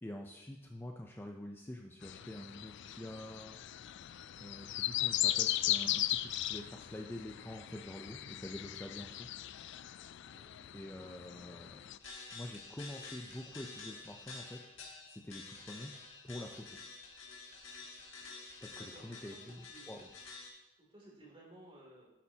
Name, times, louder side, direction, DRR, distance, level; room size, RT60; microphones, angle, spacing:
voice 1, 0.0-3.6 4.4-9.3 10.7-11.8 12.3-14.6 15.0-15.9 16.2-16.8 18.6-20.0, left 1 dB, 10° left, 1 dB, 0.5 m, -46 dB
sound 1, 2.0-12.0, left 13 dB, 65° left, 0.3 m, -37 dB
voice 2, 10.3-10.6 18.8-20.0 20.8-22.1, right 1 dB, 30° right, -2 dB, 2.7 m, -57 dB
sound 2, 12.0-20.5, left 4 dB, 80° left, 2.0 m, -50 dB
10.0 x 8.4 x 2.8 m, 0.95 s
head